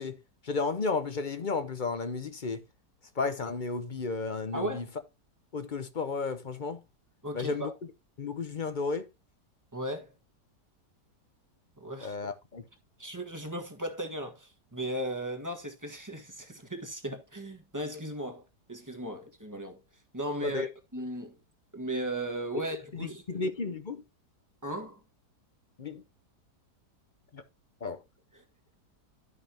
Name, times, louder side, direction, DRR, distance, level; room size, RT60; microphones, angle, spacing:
voice 1, 0.0-2.6 3.2-4.8 5.5-6.8 7.3-7.7 8.2-9.1 12.0-12.6 20.4-20.7 22.5-22.6 22.9-24.0 25.8-26.0 27.3-27.4 27.8-28.0, left 4 dB, 45° left, 0.6 m, -33 dB
voice 2, 4.5-4.9 7.2-7.7 9.7-10.1 11.8-12.2 13.0-19.8 20.1-21.4 21.7-23.4 24.6-25.0 28.3-28.4, right 1 dB, 10° right, 1.4 m, -36 dB
12.5 x 5.5 x 2.8 m
omnidirectional pair, 1.8 m